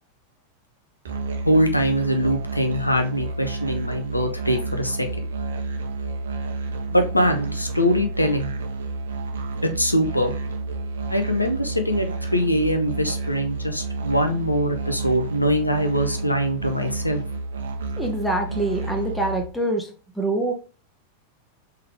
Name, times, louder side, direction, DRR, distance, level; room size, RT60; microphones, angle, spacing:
Musical instrument, 1.0-19.4, right 3 dB, 65° right, 0.7 m, -30 dB
voice 1, 1.4-5.2 6.9-8.5 9.6-10.3 11.1-17.2, equal, 85° left, 5 dB, 0.6 m, -23 dB
voice 2, 18.0-19.9 20.2-20.5, right 2 dB, 5° left, 2 dB, 1.0 m, -25 dB
3.7 x 3.3 x 3.2 m, 0.36 s
figure-of-eight pair, 90°, 0 cm